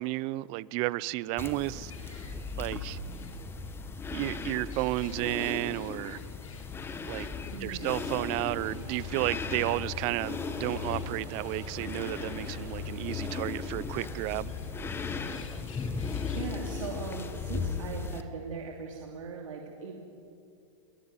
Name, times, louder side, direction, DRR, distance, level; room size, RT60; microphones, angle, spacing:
voice 1, 0.0-3.0 4.1-6.2 7.1-7.3 7.6-14.5, right 19 dB, 35° right, 21 dB, 0.6 m, -32 dB
sound 1, 1.4-18.2, left 4 dB, 15° left, 1.4 m, -37 dB
sound 2, 1.9-17.3, left 6 dB, 90° left, 3.0 m, -56 dB
voice 2, 7.5-8.0 16.3-20.0, right 5 dB, 75° right, 0 dB, 3.0 m, -40 dB
sound 3, 8.4-16.8, right 2 dB, 20° right, 6.0 m, -49 dB
21.5 x 18.0 x 9.7 m, 2.5 s
hypercardioid pair, 130°, 17 cm